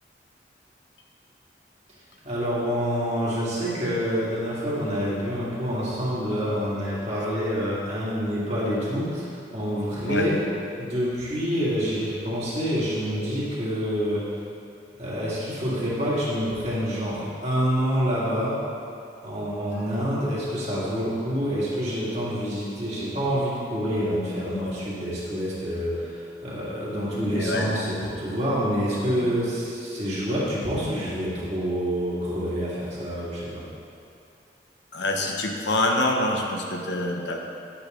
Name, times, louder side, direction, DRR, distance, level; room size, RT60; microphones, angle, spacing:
voice 1, 2.2-10.4 10.8-14.4 15.0-18.6 19.2-33.6, equal, 35° right, -8 dB, 2.6 m, -27 dB
voice 2, 27.3-27.7 29.2-29.3 34.9-37.4, left 2 dB, 80° left, 1 dB, 1.1 m, -26 dB
11.0 x 8.5 x 3.9 m, 2.5 s
head